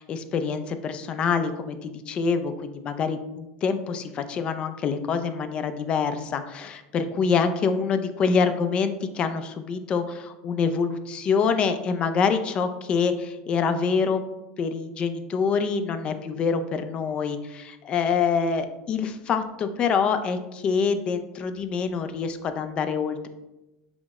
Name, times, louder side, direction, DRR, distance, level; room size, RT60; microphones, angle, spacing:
voice 1, 0.0-14.2 14.6-23.3, left 5 dB, 35° left, 9 dB, 0.4 m, -26 dB
5.0 x 2.0 x 4.7 m, 0.98 s
supercardioid pair, 120°, 3 cm